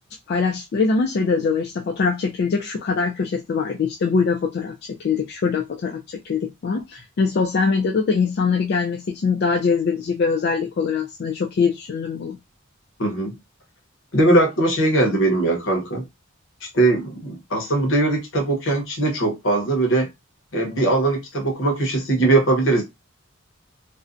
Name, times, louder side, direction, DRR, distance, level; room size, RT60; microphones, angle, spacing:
voice 1, 0.3-4.7 5.0-12.4, left 5 dB, 50° left, 0.3 m, -22 dB
voice 2, 13.0-13.4 14.1-16.0 16.7-20.1 20.5-22.8, right 2 dB, 70° left, 0.9 m, -20 dB
2.5 x 2.1 x 2.4 m
head